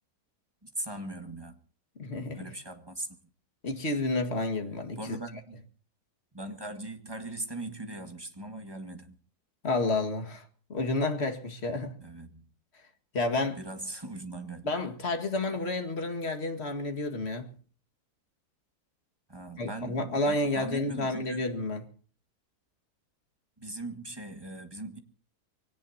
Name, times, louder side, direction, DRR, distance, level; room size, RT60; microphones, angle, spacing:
voice 1, 0.6-1.6 2.3-3.2 5.0-5.6 6.3-9.2 12.0-12.5 13.6-14.7 19.3-21.5 23.6-25.0, right 2 dB, 15° right, 1.9 m, -40 dB
voice 2, 2.0-2.4 3.6-5.2 9.6-10.4 10.7-11.9 13.1-13.6 14.6-17.5 19.6-21.8, left 2 dB, 40° left, 2.2 m, -30 dB
24.5 x 18.0 x 2.8 m
omnidirectional pair, 1.7 m